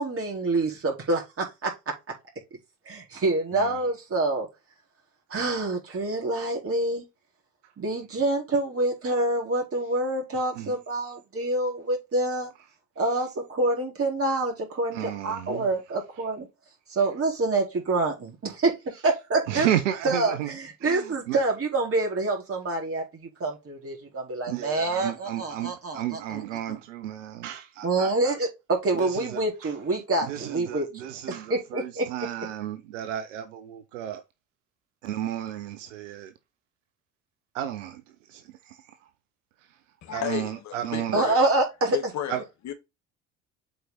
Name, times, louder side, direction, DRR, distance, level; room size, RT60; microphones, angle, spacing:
voice 1, 0.0-1.7 2.9-4.5 5.3-7.0 7.8-12.5 13.0-16.5 16.9-19.7 20.0-26.8 27.8-32.1 41.1-42.0, right 2 dB, 35° right, 4.2 m, -27 dB
voice 2, 14.9-15.7 19.5-20.5 20.8-21.4 24.5-28.3 28.9-29.4 30.3-34.2 35.0-36.3 37.5-38.0 38.3-38.4 38.7-38.8 40.1-41.4 42.3-42.4, right 11 dB, 70° right, 0.9 m, -32 dB
voice 3, 40.0-41.4 41.9-42.7, left 10 dB, 45° left, 1.5 m, -33 dB
7.8 x 4.8 x 4.0 m
figure-of-eight pair, 55°, 38 cm